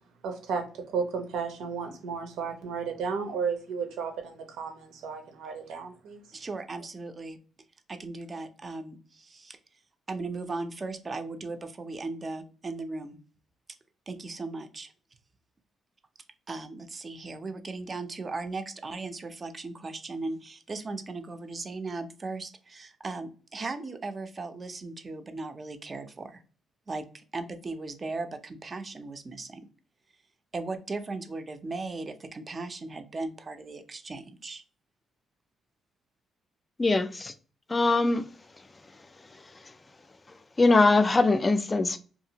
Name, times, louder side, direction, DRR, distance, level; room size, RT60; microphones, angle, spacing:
voice 1, 0.2-6.2, right 5 dB, 85° right, 5 dB, 0.7 m, -33 dB
voice 2, 6.3-7.4 7.9-9.6 10.1-13.2 14.1-14.9 16.5-26.4 26.9-29.6 30.5-34.6, right 3 dB, 35° right, 8 dB, 0.5 m, -37 dB
voice 3, 36.8-37.3 37.7-38.2 40.6-42.0, left 3 dB, 25° left, 11 dB, 0.4 m, -22 dB
2.7 x 2.5 x 2.8 m, 0.39 s
cardioid pair, 90°, 0 cm